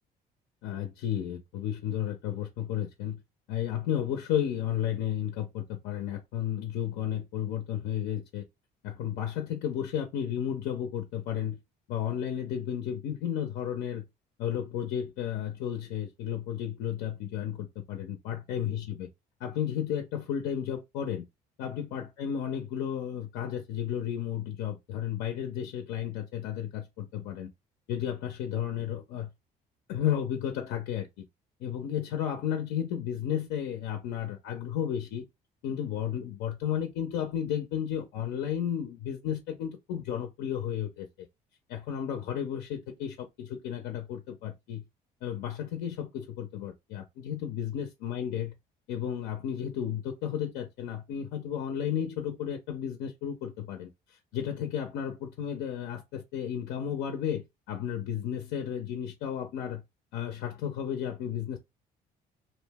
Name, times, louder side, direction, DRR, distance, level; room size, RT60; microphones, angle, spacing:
voice 1, 0.6-3.2 3.5-8.5 8.8-11.6 11.9-14.0 14.4-19.1 19.4-21.3 21.6-27.5 27.9-29.3 29.9-31.2 31.6-35.3 35.6-41.3 41.7-44.8 45.2-48.5 48.9-59.8 60.1-61.6, left 9 dB, 90° left, 0.5 m, -33 dB
2.4 x 2.1 x 3.4 m
cardioid pair, 110°, 17 cm